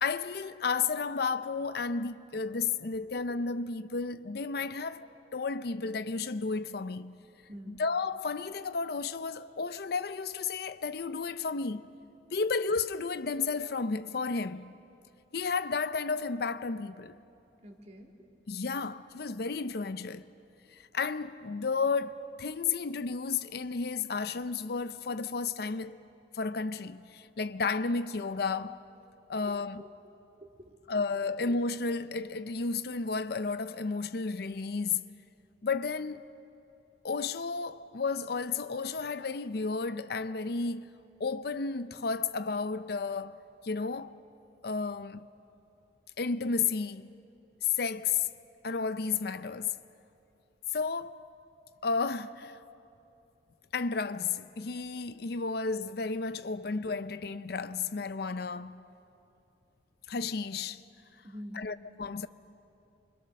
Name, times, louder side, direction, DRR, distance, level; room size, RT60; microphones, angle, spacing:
voice 1, 0.0-7.2 7.7-11.9 12.3-14.7 15.3-17.2 18.5-20.2 20.7-26.0 26.3-28.8 29.3-29.8 30.9-35.1 35.6-36.3 37.0-40.9 41.2-44.1 44.6-45.3 46.2-47.1 47.6-48.3 48.6-49.8 50.7-51.2 51.8-52.6 53.7-58.8 60.1-60.8 61.5-62.3, left 4 dB, 60° left, 0.6 m, -32 dB
voice 2, 7.5-7.8 17.6-18.1 29.5-30.1 30.4-31.0 61.2-61.6, equal, 40° right, 2.6 m, -47 dB
29.5 x 25.0 x 6.5 m
head